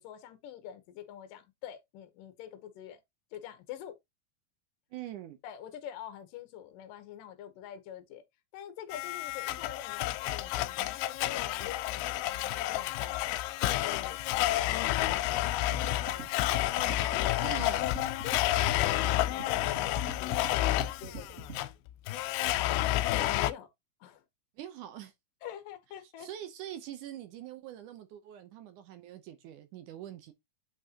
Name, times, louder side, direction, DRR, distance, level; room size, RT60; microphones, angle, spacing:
voice 1, 0.0-3.0 3.3-3.9 5.4-8.2 8.5-13.2 13.6-17.1 18.2-21.6 22.4-23.7 24.0-24.2 25.4-26.3, left 10 dB, 70° left, 2.5 m, -46 dB
voice 2, 4.9-5.4 15.3-15.4 17.4-17.9 24.6-25.1 26.0-30.3, right 12 dB, 70° right, 2.0 m, -44 dB
Domestic sounds home sounds, 8.9-23.5, left 15 dB, 85° left, 2.4 m, -30 dB
sound 1, 15.7-21.6, right 4 dB, 30° right, 1.4 m, -45 dB
8.4 x 5.4 x 2.8 m
omnidirectional pair, 4.3 m